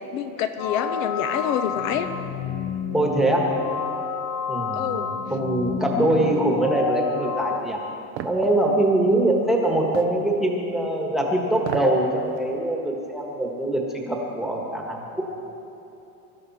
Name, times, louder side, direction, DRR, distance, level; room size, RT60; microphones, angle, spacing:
voice 1, 0.1-2.1 4.7-5.1, left 9 dB, 60° left, 9 dB, 1.0 m, -27 dB
sound 1, 0.6-7.6, left 6 dB, 35° left, 0.9 m, -29 dB
voice 2, 2.9-3.5 4.5-7.8 8.2-15.2, right 1 dB, ahead, -1 dB, 1.4 m, -23 dB
sound 2, 8.2-8.4 9.9-10.2 11.6-12.0 12.4-12.5, right 11 dB, 35° right, 0.6 m, -32 dB
23.0 x 12.5 x 4.2 m, 2.8 s
supercardioid pair, 165°, 46 cm